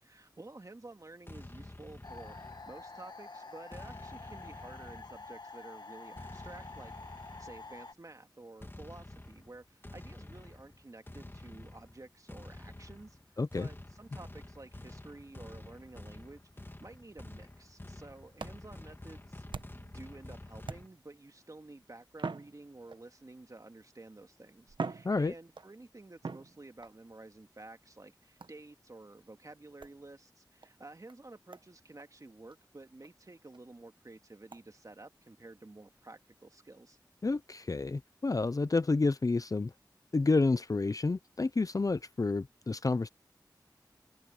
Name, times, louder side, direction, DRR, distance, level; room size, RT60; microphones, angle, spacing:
voice 1, 0.0-2.4 2.7-37.0, right 2 dB, 45° right, 2.1 m, -52 dB
sound 1, 1.3-3.0 3.7-5.4 6.2-7.8 8.6-20.9, left 1 dB, 25° left, 2.4 m, -49 dB
sound 2, 2.0-7.9, left 3 dB, 60° left, 1.6 m, -48 dB
voice 2, 13.4-13.7 25.0-25.3 37.2-39.7 40.1-43.1, left 3 dB, 45° left, 0.6 m, -29 dB
sound 3, 18.4-20.0 20.6-21.2 22.1-23.2 24.1-24.2 24.7-25.8 26.2-27.0 28.4-28.7 29.8-30.0 30.6-30.7 31.1-31.2 31.5-31.7 32.0-32.1 32.5-32.6 33.0-33.1 33.5-33.6 34.5-34.6, right 4 dB, 80° right, 1.1 m, -43 dB
open air
wide cardioid pair, 45°, 8 cm